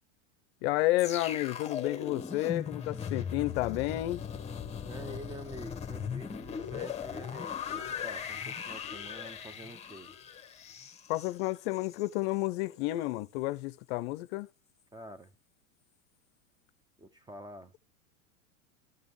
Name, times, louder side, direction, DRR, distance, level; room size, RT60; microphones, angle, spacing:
voice 1, 0.6-4.2 11.1-14.5, left 17 dB, 55° left, 0.6 m, -31 dB
sound 1, 1.0-12.1 12.4-12.6, left 7 dB, 15° left, 1.2 m, -39 dB
voice 2, 4.8-10.2 14.9-15.3 17.0-17.8, right 1 dB, 10° right, 0.8 m, -47 dB
12.5 x 5.1 x 3.1 m
hypercardioid pair, 105°, 39 cm